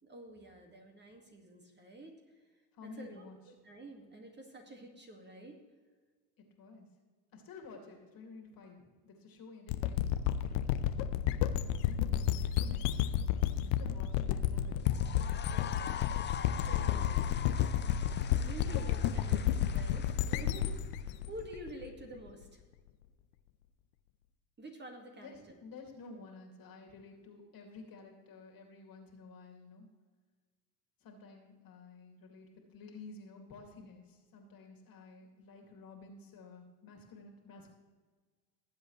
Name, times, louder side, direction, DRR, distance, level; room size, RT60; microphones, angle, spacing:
voice 1, 0.0-2.4 2.8-5.6 15.5-16.0 16.6-17.3 18.4-22.6 24.6-25.6, right 1 dB, 20° right, 2 dB, 2.0 m, -49 dB
voice 2, 2.7-3.4 6.4-6.9 7.3-10.8 11.1-13.1 13.8-14.8 25.2-29.9 31.0-37.7, left 3 dB, 45° left, 2 dB, 2.6 m, -52 dB
sound 1, 9.7-22.3, left 10 dB, 65° left, 0.8 m, -31 dB
sound 2, 14.8-21.1, left 9 dB, 20° left, 0.6 m, -44 dB
19.0 x 7.6 x 3.2 m, 1.4 s
hypercardioid pair, 95°, 50 cm